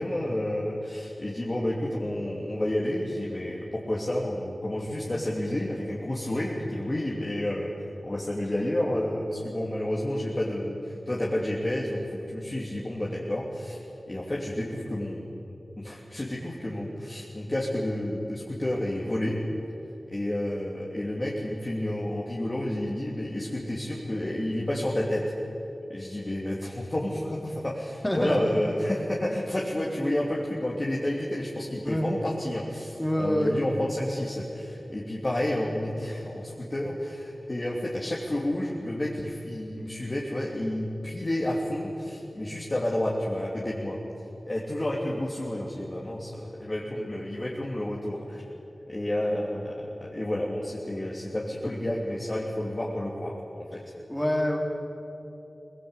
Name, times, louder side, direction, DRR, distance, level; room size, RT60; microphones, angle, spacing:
voice 1, 0.0-7.7 8.0-13.8 14.1-15.3 15.8-19.4 20.1-25.2 25.9-44.0 44.5-48.5 48.9-53.8, left 1 dB, 30° left, -4 dB, 2.9 m, -30 dB
voice 2, 28.0-28.4 31.8-32.4 33.0-33.5 54.1-54.6, equal, 10° left, 0 dB, 3.1 m, -26 dB
23.5 x 19.5 x 8.2 m, 2.9 s
wide cardioid pair, 80°, 0 cm